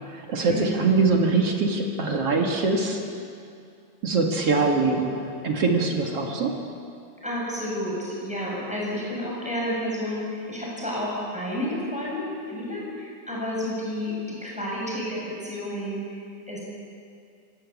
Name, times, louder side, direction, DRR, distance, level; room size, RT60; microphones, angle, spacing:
voice 1, 0.1-3.0 4.0-6.6, right 3 dB, 45° right, 1 dB, 2.1 m, -23 dB
voice 2, 7.2-16.6, left 1 dB, ahead, -5 dB, 7.1 m, -31 dB
25.5 x 17.5 x 8.5 m, 2.5 s
omnidirectional pair, 5.2 m